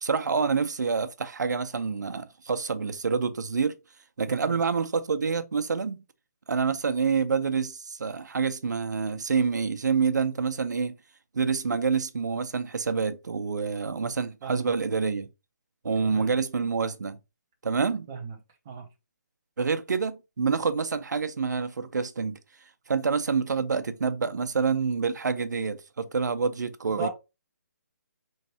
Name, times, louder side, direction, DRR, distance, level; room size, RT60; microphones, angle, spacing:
voice 1, 0.0-3.8 4.2-6.0 6.5-10.9 11.3-15.3 15.8-17.2 17.6-18.1 19.6-22.4 22.9-27.1, right 5 dB, 85° right, 0.6 m, -27 dB
voice 2, 16.0-16.4 18.1-18.4 18.7-18.9 26.9-27.1, right 4 dB, 10° right, 0.4 m, -36 dB
4.3 x 3.2 x 2.7 m
hypercardioid pair, 180°, 9 cm